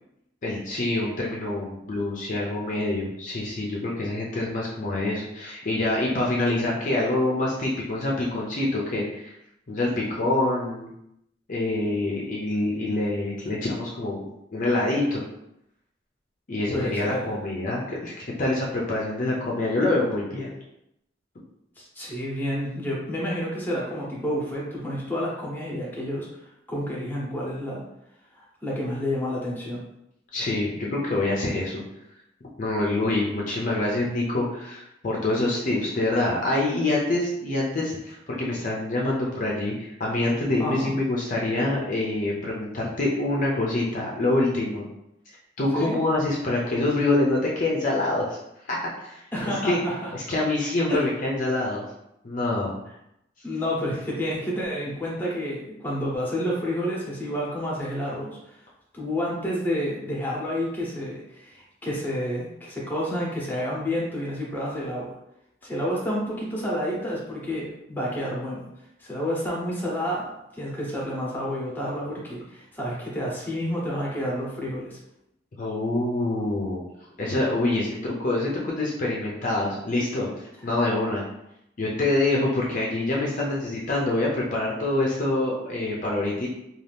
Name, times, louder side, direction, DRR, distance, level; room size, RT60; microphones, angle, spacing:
voice 1, 0.4-9.3 9.7-10.9 11.5-15.2 16.5-20.5 30.3-31.8 32.6-44.9 45.6-48.4 48.7-49.2 49.6-49.8 50.1-51.8 52.2-52.8 75.6-76.9 77.2-81.2 81.8-86.5, left 2 dB, 45° left, -3 dB, 0.5 m, -26 dB
voice 2, 16.7-17.4 21.8-27.8 28.3-29.8 40.6-40.9 45.7-46.0 49.3-50.1 50.9-51.0 53.4-58.6 58.9-65.1 65.6-68.6 69.0-75.0, equal, 10° left, -4 dB, 0.8 m, -29 dB
2.7 x 2.4 x 3.3 m, 0.81 s
head